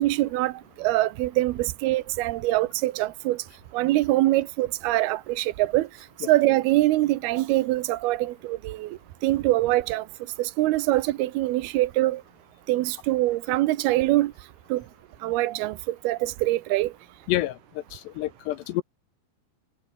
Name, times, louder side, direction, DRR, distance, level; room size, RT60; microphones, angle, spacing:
voice 1, 0.0-3.4 3.7-5.9 6.3-10.1 10.4-12.2 12.7-14.3 14.7-14.8 15.2-16.9, right 17 dB, 80° right, 2.3 m, -24 dB
voice 2, 17.3-18.8, left 15 dB, 75° left, 2.6 m, -29 dB
omnidirectional pair, 5.7 m